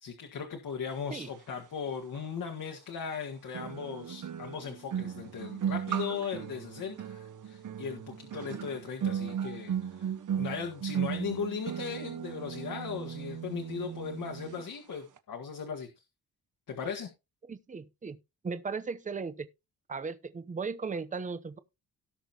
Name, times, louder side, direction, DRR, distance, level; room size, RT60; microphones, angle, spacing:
voice 1, 0.0-15.9 16.7-17.1, left 6 dB, 60° left, 1.8 m, -38 dB
sound 1, 2.1-2.2 3.5-14.6 14.9-15.2, right 8 dB, 55° right, 1.3 m, -36 dB
voice 2, 17.5-18.2 18.4-19.5 19.9-21.6, right 5 dB, 20° right, 0.8 m, -36 dB
17.5 x 6.2 x 2.9 m
wide cardioid pair, 155°, 37 cm